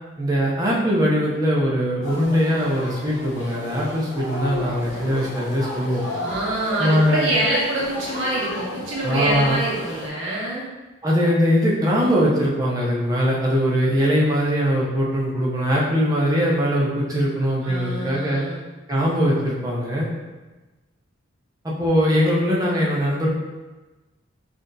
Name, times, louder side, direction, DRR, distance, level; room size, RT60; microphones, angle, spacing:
voice 1, 0.2-6.0 6.8-7.3 9.0-9.6 11.0-18.4 18.9-20.1 21.6-23.3, equal, 20° right, -5 dB, 0.7 m, -21 dB
sound 1, 2.0-10.1, left 2 dB, 70° left, 0.8 m, -34 dB
voice 2, 6.2-10.6 17.6-18.6, right 1 dB, 75° right, -6 dB, 1.1 m, -25 dB
3.7 x 3.4 x 2.7 m, 1.2 s
head